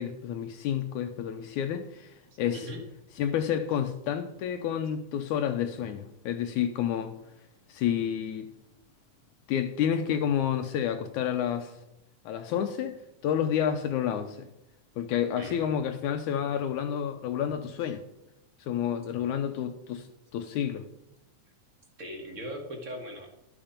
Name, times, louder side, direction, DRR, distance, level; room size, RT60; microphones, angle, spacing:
voice 1, 0.0-2.7 3.2-7.1 7.7-8.5 9.5-11.8 12.3-14.5 15.0-18.0 18.6-20.1 20.3-20.8, left 9 dB, 75° left, 6 dB, 2.1 m, -30 dB
voice 2, 15.3-15.8 22.0-23.3, equal, 30° right, 3 dB, 1.5 m, -39 dB
12.0 x 7.3 x 5.2 m, 0.86 s
omnidirectional pair, 3.6 m